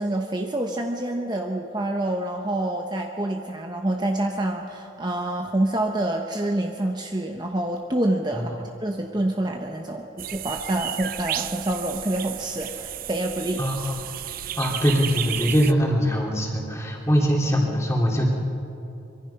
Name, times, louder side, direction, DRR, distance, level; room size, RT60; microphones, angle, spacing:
voice 1, 0.0-8.5 8.8-13.6, right 1 dB, 20° right, 3 dB, 0.9 m, -27 dB
sound 1, 10.2-15.7, right 12 dB, 45° right, 0.5 m, -33 dB
voice 2, 13.6-13.9 14.6-18.3, equal, 15° left, -1 dB, 3.1 m, -22 dB
25.0 x 23.0 x 5.8 m, 2.9 s
head